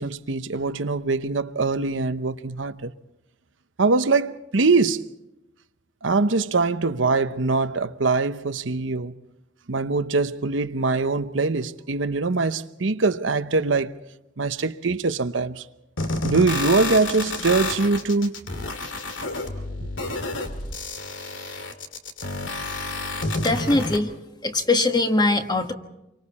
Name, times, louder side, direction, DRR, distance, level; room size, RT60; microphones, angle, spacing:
voice 1, 0.0-2.9 3.8-5.2 6.0-9.1 9.7-14.0 14.4-15.7 16.2-18.5, right 3 dB, 85° right, 0.9 m, -23 dB
sound 1, 16.0-24.0, left 2 dB, 80° left, 2.3 m, -30 dB
voice 2, 23.4-24.1 24.4-25.7, left 2 dB, 25° left, 1.5 m, -21 dB
28.0 x 24.5 x 4.3 m
head